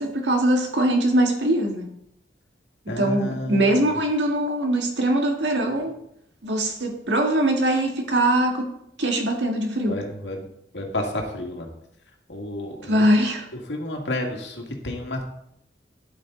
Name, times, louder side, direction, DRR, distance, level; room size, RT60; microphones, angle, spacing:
voice 1, 0.0-1.9 2.9-6.0 6.4-8.7 9.0-10.0 12.9-13.4, right 1 dB, 85° right, 2 dB, 1.9 m, -22 dB
voice 2, 2.9-3.7 9.9-10.5 10.7-11.7 12.3-13.0 13.7-15.3, left 1 dB, 80° left, 1 dB, 2.1 m, -30 dB
10.5 x 8.7 x 4.0 m, 0.76 s
head